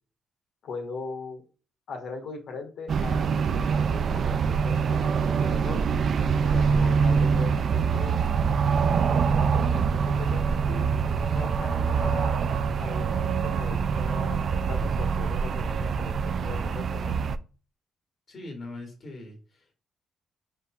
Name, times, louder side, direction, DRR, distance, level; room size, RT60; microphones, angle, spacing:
voice 1, 0.6-1.4 1.9-5.8 6.4-9.0 9.7-12.4 12.8-17.2, left 4 dB, 75° left, 2 dB, 1.6 m, -40 dB
sound 1, 2.9-17.4, right 6 dB, 55° right, 0.3 m, -25 dB
voice 2, 18.3-19.7, left 2 dB, 50° left, 2 dB, 2.3 m, -41 dB
5.2 x 3.8 x 2.4 m, 0.37 s
cardioid pair, 95°, 0 cm